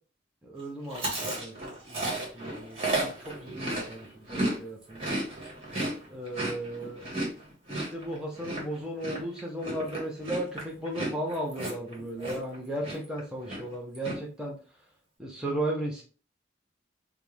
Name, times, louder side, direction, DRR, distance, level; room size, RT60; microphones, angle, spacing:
voice 1, 0.4-5.1 6.1-7.0 7.7-14.6 15.2-16.0, right 1 dB, 5° right, -2 dB, 0.8 m, -36 dB
Chewing mastication, 0.9-4.6 4.8-12.6 12.8-13.2 13.4-14.2, right 1 dB, 30° right, 1.5 m, -33 dB
4.5 x 2.3 x 3.4 m, 0.37 s
head